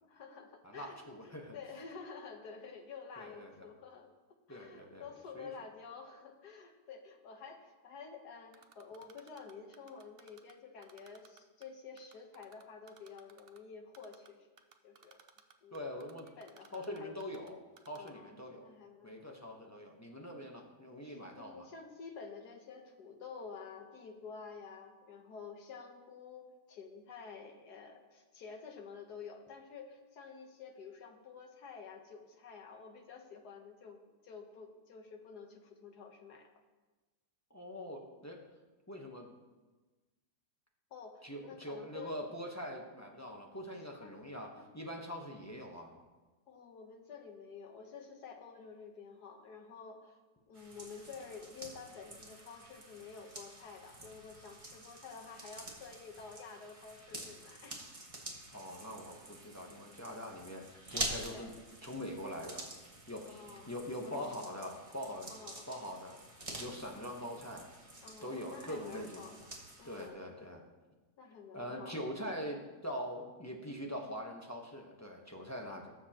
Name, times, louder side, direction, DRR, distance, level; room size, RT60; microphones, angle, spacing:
voice 1, 0.0-4.1 4.5-14.5 14.8-15.2 15.6-15.9 16.2-17.1 18.0-18.3 18.6-19.3 19.6-19.7 21.0-36.5 40.9-42.2 44.0-44.2 44.6-44.7 46.5-50.2 50.5-57.8 61.2-61.5 63.3-63.7 64.0-64.4 65.3-65.7 68.0-69.5 69.8-70.2 71.2-72.0, left 5 dB, 75° left, 4 dB, 1.7 m, -50 dB
voice 2, 0.6-1.5 3.2-3.7 4.5-5.0 5.3-5.5 15.7-16.3 16.7-17.6 17.9-18.7 19.0-21.7 37.5-38.4 38.9-39.3 41.2-45.9 58.5-62.7 63.1-65.3 65.7-66.2 66.6-67.7 68.2-69.3 69.8-70.6 71.5-75.9, equal, 10° left, 0 dB, 0.9 m, -43 dB
Typing, 8.5-10.5 10.8-11.7 12.0-13.6 13.9-14.3 14.6-17.5 17.8-18.1, right 8 dB, 60° right, 0.6 m, -59 dB
sound 1, 50.5-70.1, right 1 dB, 20° right, 1.4 m, -47 dB
19.0 x 7.2 x 2.9 m, 1.2 s
omnidirectional pair, 1.7 m